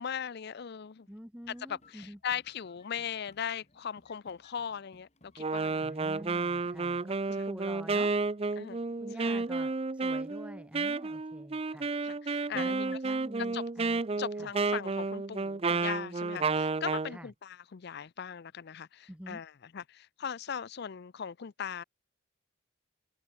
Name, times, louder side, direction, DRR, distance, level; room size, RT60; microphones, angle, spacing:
voice 1, 0.0-1.1 1.7-5.9 8.6-9.4 12.0-12.9 13.5-13.6 14.2-21.8, left 7 dB, 50° left, 0.5 m, -39 dB
voice 2, 1.1-2.2 5.8-8.1 9.0-11.9 12.5-14.0 14.4-14.5 17.1-17.3 19.1-19.4, equal, 5° right, 2.0 m, -47 dB
sound 1, 1.4-7.0, left 2 dB, 30° left, 3.3 m, -63 dB
Wind instrument woodwind instrument, 5.4-17.1, right 3 dB, 30° right, 0.5 m, -31 dB
head